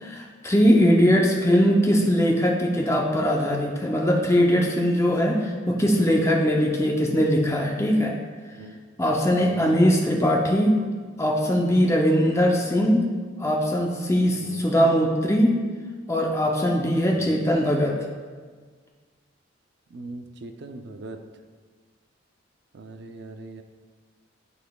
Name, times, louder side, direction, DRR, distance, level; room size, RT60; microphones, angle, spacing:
voice 1, 0.0-8.1 9.0-10.8 11.2-13.0 13.4-15.5 16.1-18.0, equal, 15° left, 0 dB, 0.5 m, -21 dB
voice 2, 9.4-9.7 14.4-14.6 17.1-17.4 19.9-21.2 22.7-23.6, right 2 dB, 55° right, 6 dB, 0.5 m, -40 dB
12.0 x 4.1 x 2.3 m, 1.5 s
head